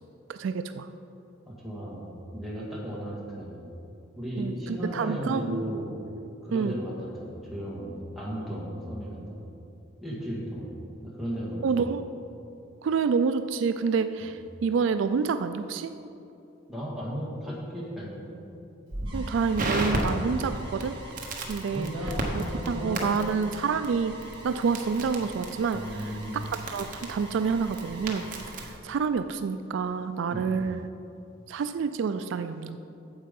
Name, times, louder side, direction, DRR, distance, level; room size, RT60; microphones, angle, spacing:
voice 1, 0.3-0.9 4.4-5.6 6.5-6.8 11.6-12.0 12.8-15.9 19.1-21.0 21.5-21.9 22.3-24.1 24.4-25.8 26.3-28.3 28.6-30.8 31.5-32.8, right 5 dB, 70° right, 10 dB, 0.3 m, -28 dB
voice 2, 1.4-3.7 4.1-5.9 6.4-9.5 10.0-11.7 16.7-18.3 20.3-20.5 21.7-23.2 25.7-26.4 30.3-30.5, equal, ahead, -6 dB, 1.8 m, -35 dB
Crackle, 18.9-28.8, right 1 dB, 40° right, 1.1 m, -35 dB
sound 1, 19.1-28.5, right 1 dB, 25° right, 1.4 m, -46 dB
8.8 x 7.4 x 5.3 m, 2.8 s
head